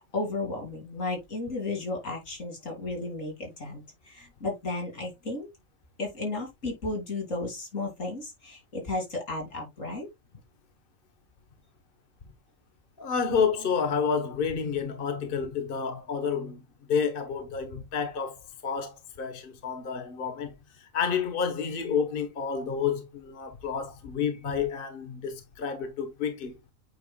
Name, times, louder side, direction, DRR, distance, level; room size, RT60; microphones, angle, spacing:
voice 1, 0.1-5.5 6.0-10.1, left 2 dB, 85° left, 3.4 m, -34 dB
voice 2, 13.0-16.6 16.9-20.5 20.8-26.6, left 6 dB, 45° left, 1.4 m, -30 dB
8.5 x 5.8 x 2.2 m
omnidirectional pair, 1.3 m